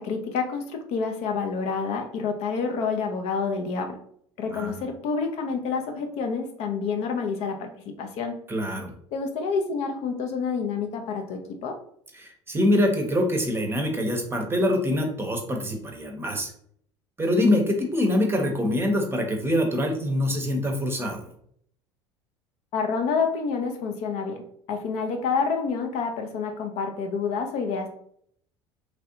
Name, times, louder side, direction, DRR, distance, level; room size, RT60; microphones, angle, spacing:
voice 1, 0.0-4.0 4.4-7.7 8.0-8.3 9.1-11.8 22.7-27.9, left 5 dB, 50° left, 4 dB, 0.5 m, -28 dB
voice 2, 8.5-8.9 12.2-16.5 17.2-21.2, left 1 dB, 15° right, 2 dB, 0.7 m, -24 dB
3.2 x 2.5 x 2.6 m, 0.65 s
figure-of-eight pair, 65°, 15 cm